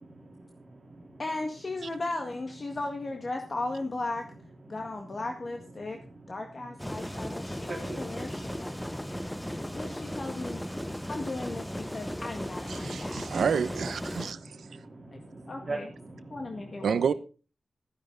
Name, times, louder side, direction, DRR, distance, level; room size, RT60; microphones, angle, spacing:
voice 1, 0.0-1.2 5.8-10.3 10.7-11.1 11.8-12.1 12.8-13.5 14.1-16.9, right 2 dB, 30° right, 3.7 m, -44 dB
voice 2, 1.2-4.3 4.7-6.0 6.3-9.3 9.7-10.6 11.1-13.3 15.1-15.2 15.5-15.9 16.3-17.0, left 2 dB, 35° left, 1.8 m, -36 dB
sound 1, 6.8-14.3, equal, 5° left, 0.6 m, -36 dB
voice 3, 12.7-14.5 16.8-17.1, right 6 dB, 85° right, 0.9 m, -29 dB
15.5 x 10.5 x 4.0 m
wide cardioid pair, 135°, 0 cm